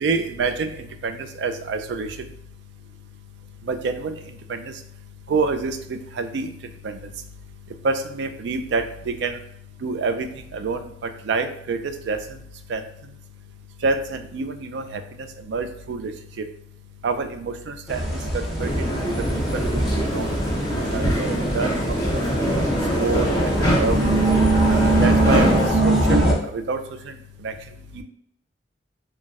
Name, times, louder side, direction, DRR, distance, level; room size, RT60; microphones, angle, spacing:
voice 1, 0.0-0.7 1.0-2.1 3.7-4.2 4.5-4.6 5.3-6.5 6.8-7.0 7.8-9.3 9.8-10.3 10.5-10.8 11.3-12.2 12.7-12.8 13.8-15.0 15.5-16.1 17.0-18.0 18.3-18.7 19.1-19.2 19.5-20.3 20.9-21.9 22.5-22.6 23.0-23.3 23.7-24.0 24.7-25.5 25.8-26.3 26.5-26.8 27.4-27.5 28.0-28.1, right 4 dB, 65° right, 7 dB, 0.3 m, -26 dB
sound 1, 17.9-26.3, right 2 dB, ahead, 0.6 m, -22 dB
sound 2, 18.6-25.7, equal, 20° left, 1.3 m, -24 dB
3.9 x 2.1 x 2.4 m, 0.71 s
head